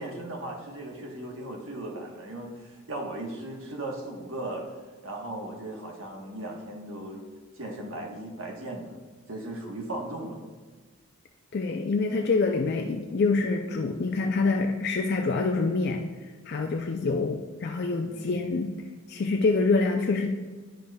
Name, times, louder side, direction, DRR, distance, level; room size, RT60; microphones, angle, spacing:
voice 1, 0.0-4.6 5.0-7.2 7.6-8.9 9.3-10.4 18.0-18.3, right 1 dB, 70° right, 0 dB, 1.2 m, -37 dB
voice 2, 11.5-16.0 16.5-18.7 19.1-20.3, left 3 dB, 50° left, 3 dB, 0.4 m, -26 dB
10.0 x 5.2 x 2.3 m, 1.4 s
head